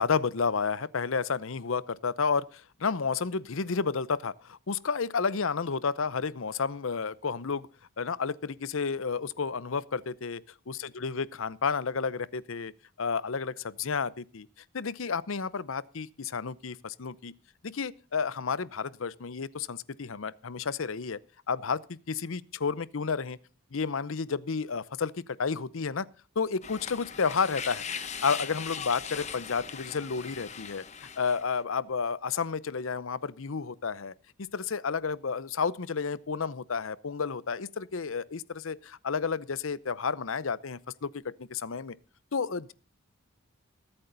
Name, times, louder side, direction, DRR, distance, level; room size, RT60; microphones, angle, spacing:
voice 1, 0.0-7.7 8.0-10.4 10.7-12.7 13.0-14.5 14.7-17.3 17.6-21.2 21.5-23.4 23.7-26.1 26.4-27.8 28.2-42.0 42.3-42.7, left 5 dB, 75° left, 0.7 m, -31 dB
sound 1, 26.6-31.5, left 7 dB, 35° left, 1.0 m, -39 dB
21.0 x 8.8 x 3.9 m
head